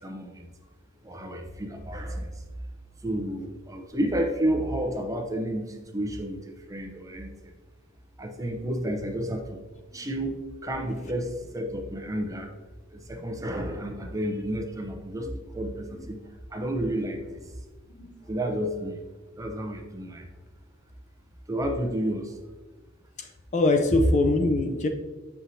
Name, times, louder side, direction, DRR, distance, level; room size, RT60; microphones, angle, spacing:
voice 1, 0.0-0.5 1.0-2.5 3.0-7.5 8.2-9.6 9.9-12.5 12.9-16.2 16.5-17.5 18.3-19.0 19.4-20.3 21.5-22.4 23.9-24.0, right 1 dB, 15° right, 3 dB, 0.7 m, -31 dB
voice 2, 23.2-24.9, left 2 dB, 35° left, 5 dB, 0.5 m, -24 dB
7.6 x 5.7 x 2.7 m, 1.3 s
head